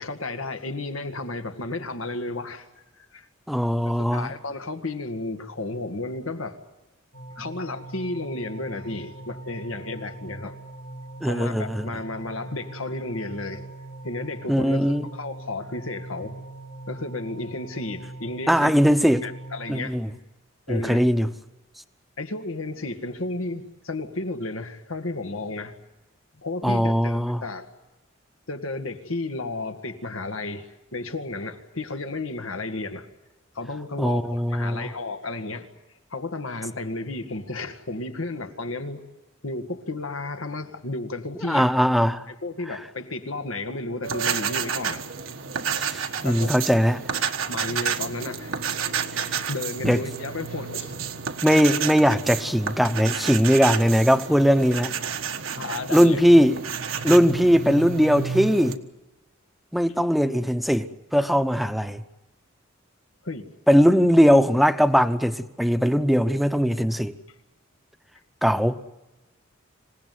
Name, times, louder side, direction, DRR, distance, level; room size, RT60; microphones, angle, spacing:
voice 1, 0.0-2.7 3.0-3.3 4.1-6.6 7.3-10.6 11.2-13.7 14.0-16.4 16.9-18.7 19.2-20.0 20.7-21.1 22.2-25.8 26.4-27.7 28.5-33.1 33.6-35.7 36.1-39.0 39.4-41.7 42.3-45.1 46.2-46.6 46.9-47.1 47.5-48.6 49.5-51.0 55.5-56.2 63.2-63.5, left 2 dB, 90° left, 1.9 m, -33 dB
voice 2, 3.5-4.3 11.2-11.9 14.5-15.1 18.5-19.2 19.7-20.1 20.7-21.3 26.6-27.4 34.0-34.9 41.5-42.2 45.8-47.0 49.1-49.3 49.8-50.0 51.4-54.9 55.9-56.6 57.0-58.8 59.7-62.0 63.7-67.1 68.4-68.8, equal, ahead, 0.8 m, -20 dB
sound 1, 7.1-19.8, right 2 dB, 60° left, 3.1 m, -41 dB
sound 2, 44.0-58.8, right 7 dB, 85° right, 1.4 m, -30 dB
26.5 x 17.5 x 9.4 m
head